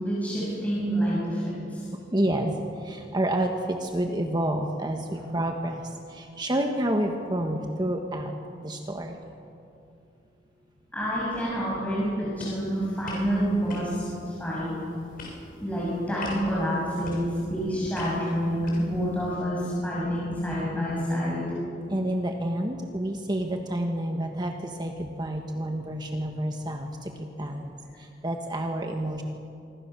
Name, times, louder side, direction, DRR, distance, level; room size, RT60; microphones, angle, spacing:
voice 1, 0.0-1.9 10.9-14.8 15.6-21.5, equal, 10° left, -7 dB, 6.5 m, -28 dB
voice 2, 1.9-9.2 21.9-27.7 28.0-29.2, right 1 dB, 25° right, 3 dB, 1.5 m, -29 dB
sound 1, 12.3-19.3, left 1 dB, 50° left, 7.1 m, -44 dB
26.0 x 24.0 x 6.9 m, 2.5 s
head